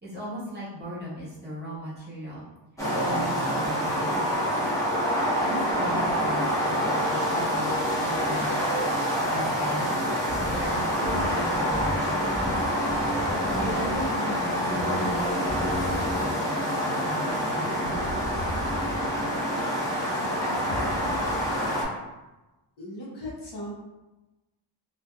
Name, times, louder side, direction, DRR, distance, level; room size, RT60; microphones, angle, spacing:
voice 1, 0.0-2.4 3.0-4.6 5.4-8.6 9.1-10.0 10.4-12.9 13.5-18.0, equal, 20° right, -9 dB, 1.1 m, -37 dB
sound 1, 2.8-21.8, equal, 5° left, 0.7 m, -27 dB
sound 2, 10.2-10.7 11.0-11.4 11.7-14.1 14.5-16.4 17.8-19.2 20.6-21.7, left 1 dB, 35° left, 1.4 m, -37 dB
voice 2, 20.1-22.0 22.8-23.7, equal, 65° left, -5 dB, 0.9 m, -37 dB
2.7 x 2.4 x 2.3 m, 1.1 s
wide cardioid pair, 120°, 45 cm